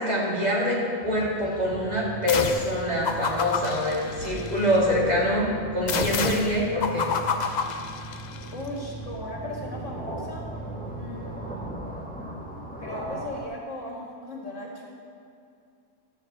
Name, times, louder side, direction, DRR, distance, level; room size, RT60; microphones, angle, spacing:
voice 1, 0.1-5.5 5.7-7.1, left 1 dB, 35° right, -6 dB, 2.4 m, -25 dB
sound 1, 1.0-13.4, right 1 dB, 5° left, 1.1 m, -41 dB
sound 2, 1.6-11.7, right 4 dB, 60° right, 3.6 m, -41 dB
sound 3, 2.3-2.7 3.0-4.8 5.9-8.5, left 5 dB, 50° left, 0.5 m, -29 dB
voice 2, 8.5-10.5 10.9-11.6 12.8-14.9, left 1 dB, 75° left, -2 dB, 2.2 m, -37 dB
12.5 x 4.7 x 7.8 m, 2.4 s
omnidirectional pair, 1.3 m